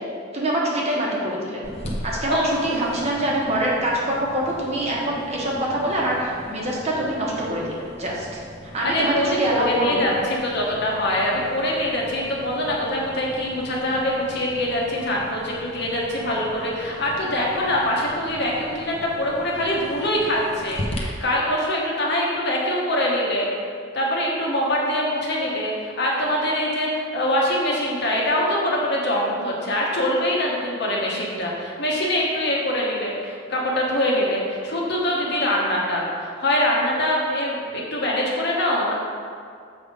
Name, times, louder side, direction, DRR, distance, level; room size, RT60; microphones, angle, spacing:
voice 1, 0.3-1.6 2.0-8.4 8.7-10.2, right 1 dB, 35° right, -4 dB, 1.0 m, -24 dB
sound 1, 1.6-21.0, equal, 35° left, 0.8 m, -39 dB
voice 2, 2.3-2.6 8.8-23.5 23.9-38.9, left 1 dB, 60° left, -3 dB, 1.3 m, -24 dB
6.8 x 3.6 x 5.1 m, 2.2 s
head